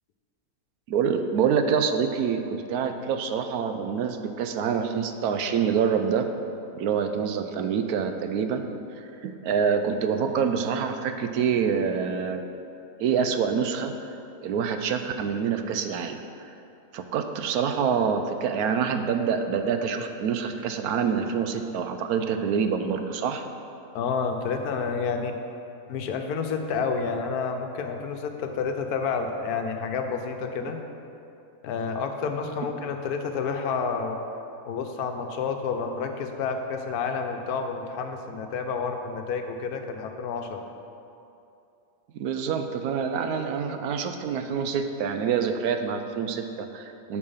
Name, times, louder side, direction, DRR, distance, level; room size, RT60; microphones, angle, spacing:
voice 1, 0.9-6.3 6.7-8.7 9.0-12.4 13.0-13.9 14.4-16.5 16.9-23.4 42.1-47.2, right 6 dB, 80° right, 7 dB, 1.1 m, -26 dB
voice 2, 23.9-25.4 25.9-30.8 31.6-34.2 34.7-40.7, left 5 dB, 80° left, 5 dB, 1.2 m, -29 dB
8.5 x 4.8 x 5.6 m, 2.7 s
omnidirectional pair, 1.6 m